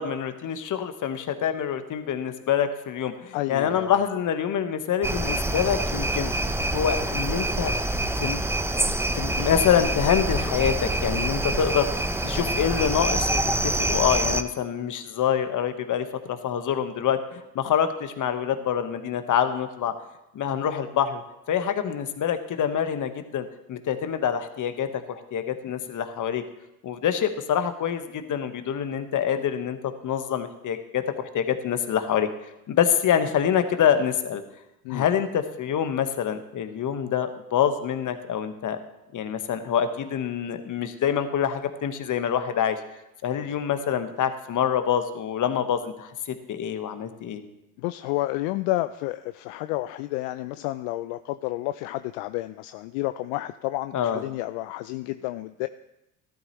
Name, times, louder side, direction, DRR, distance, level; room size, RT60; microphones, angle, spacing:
voice 1, 0.0-7.8 8.2-8.4 9.1-13.4 13.8-19.9 20.3-21.2 21.5-26.4 26.8-32.3 32.7-34.4 34.9-38.8 39.1-42.8 43.2-46.1 46.5-47.4 53.9-54.2, left 8 dB, 50° left, 9 dB, 1.3 m, -26 dB
voice 2, 3.3-4.0 34.8-35.1 43.5-43.6 47.8-55.7, left 17 dB, 75° left, 11 dB, 0.5 m, -30 dB
sound 1, 5.0-14.4, right 1 dB, 5° right, 0.7 m, -26 dB
14.0 x 11.5 x 3.1 m, 0.91 s
hypercardioid pair, 70°, 41 cm